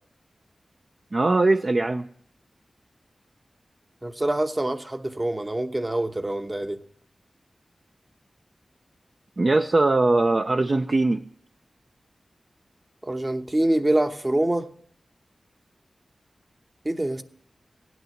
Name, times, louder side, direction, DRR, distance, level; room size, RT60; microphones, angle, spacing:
voice 1, 1.1-2.1 9.4-11.3, right 2 dB, 40° right, 0.5 m, -21 dB
voice 2, 4.0-6.8 13.0-14.7 16.8-17.2, right 1 dB, 25° right, 0.9 m, -25 dB
16.5 x 9.5 x 6.5 m
wide cardioid pair, 105°, 0 cm